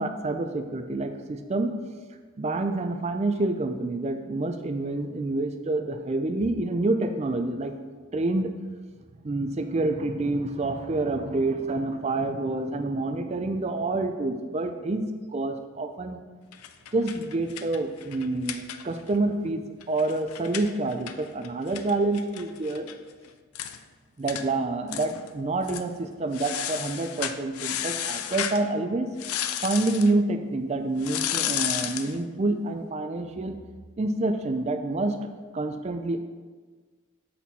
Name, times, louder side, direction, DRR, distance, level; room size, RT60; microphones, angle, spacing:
voice 1, 0.0-1.7 2.4-7.7 8.1-8.5 9.2-15.1 15.3-16.2 16.9-22.9 24.2-29.1 29.6-33.6 34.0-36.2, right 2 dB, 30° right, 7 dB, 0.4 m, -27 dB
sound 1, 16.5-19.2 19.5-19.6 19.8-22.9 23.2-23.3 23.5-23.8 24.3-24.5 24.9-25.3 25.6-25.9 26.3-28.6 29.2-30.1 31.0-32.1, left 10 dB, 85° left, 0.4 m, -32 dB
7.6 x 4.2 x 4.1 m, 1.5 s
head